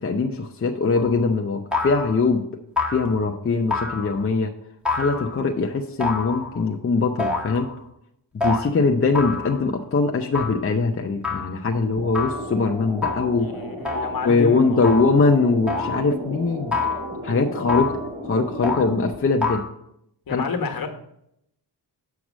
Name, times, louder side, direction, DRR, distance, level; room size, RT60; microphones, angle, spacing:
voice 1, 0.0-2.5 2.9-4.5 4.9-7.7 8.3-13.5 14.2-16.8 17.2-19.7 20.3-20.4, left 4 dB, 30° left, 3 dB, 0.7 m, -22 dB
sound 1, 1.0-1.2 1.7-2.3 2.8-3.2 3.7-4.3 4.9-5.5 6.0-6.7 7.2-7.8 8.4-8.6 9.1-9.7 10.3-10.7 11.2-11.6 12.1-12.5 13.0-13.4 13.9-14.3 14.8-15.2 15.7-16.1 16.7-17.2 17.7-18.1 18.6-18.9 19.4-19.7, left 4 dB, ahead, 1.5 m, -27 dB
sound 2, 12.0-19.1, equal, 40° right, 2.5 m, -34 dB
voice 2, 13.3-15.0 20.3-20.9, left 4 dB, 50° left, 5 dB, 1.4 m, -30 dB
7.3 x 4.8 x 6.2 m, 0.78 s
cardioid pair, 80°, 44 cm